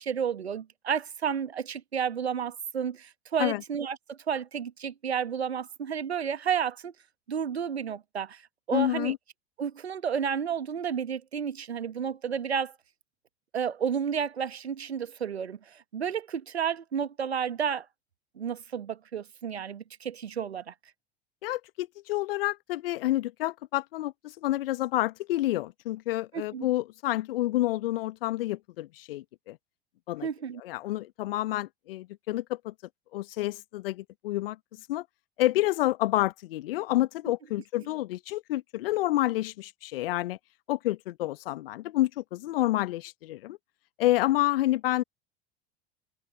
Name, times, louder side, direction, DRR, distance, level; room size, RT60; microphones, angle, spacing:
voice 1, 0.0-6.9 7.3-8.4 8.7-9.1 9.6-12.7 13.5-17.9 18.4-20.7 26.3-26.7 30.2-30.6, right 7 dB, 75° right, 1.3 m, -31 dB
voice 2, 8.7-9.2 21.4-29.6 30.1-30.3 30.6-32.7 33.1-34.6 34.9-35.0 35.4-40.4 40.7-43.6 44.0-45.0, left 16 dB, 60° left, 1.2 m, -29 dB
figure-of-eight pair, 75°, 32 cm